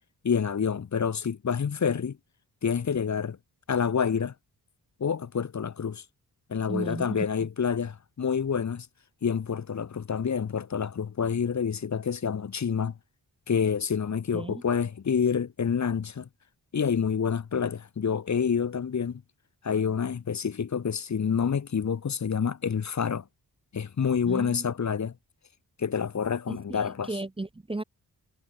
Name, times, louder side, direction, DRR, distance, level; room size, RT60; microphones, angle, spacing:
voice 1, 0.2-2.2 2.6-3.4 3.7-4.3 5.0-6.0 6.5-8.9 9.2-12.9 13.5-16.3 16.7-19.2 19.6-23.2 23.7-25.1 25.8-27.2, left 6 dB, 45° left, 1.2 m, -28 dB
voice 2, 6.7-7.3 14.3-14.6 24.3-24.7 26.5-27.8, right 2 dB, 15° right, 0.8 m, -35 dB
wide cardioid pair, 135°, 38 cm